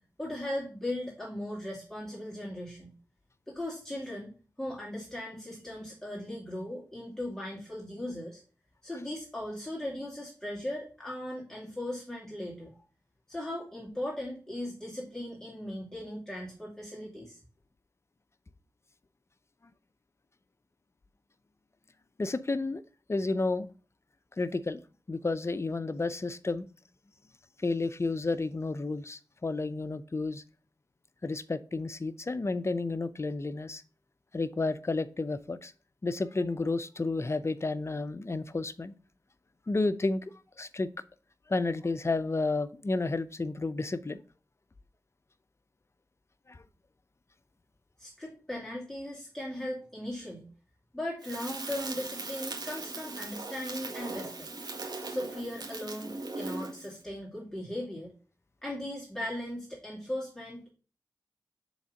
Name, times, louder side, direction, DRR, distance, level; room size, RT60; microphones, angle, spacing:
voice 1, 0.2-2.9 3.5-8.4 8.8-12.7 13.3-17.4 48.0-50.5 50.9-54.5 55.1-58.1 58.6-60.7, left 1 dB, 5° left, -5 dB, 2.4 m, -38 dB
voice 2, 22.2-22.8 23.1-23.7 24.4-24.8 25.1-26.7 27.6-30.4 31.2-33.8 34.3-35.7 36.0-38.9 39.7-40.2 40.6-40.9 41.5-44.2 46.5-46.6, left 3 dB, 35° left, 12 dB, 0.6 m, -31 dB
Crackle, 51.2-56.9, right 3 dB, 65° right, 1.8 m, -39 dB
7.1 x 3.6 x 5.2 m, 0.37 s
cardioid pair, 45°, 8 cm